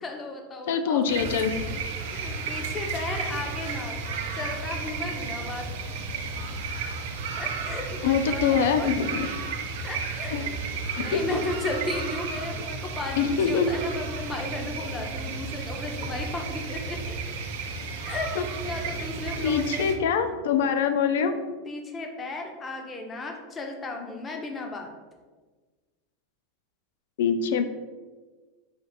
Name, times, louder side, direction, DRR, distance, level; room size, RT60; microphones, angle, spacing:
voice 1, 0.0-1.1 2.1-4.0 4.3-5.7 7.4-8.9 9.8-10.6 10.9-17.2 18.0-19.9 21.6-24.9, left 2 dB, 20° left, 3 dB, 0.5 m, -35 dB
voice 2, 0.7-1.8 8.0-9.3 10.3-10.4 11.0-11.2 13.2-13.7 18.4-18.5 19.4-21.4 27.2-27.8, left 7 dB, 75° left, 9 dB, 0.4 m, -24 dB
sound 1, 1.0-19.9, right 4 dB, 70° right, 0.6 m, -33 dB
4.3 x 2.5 x 3.9 m, 1.4 s
supercardioid pair, 155°, 0 cm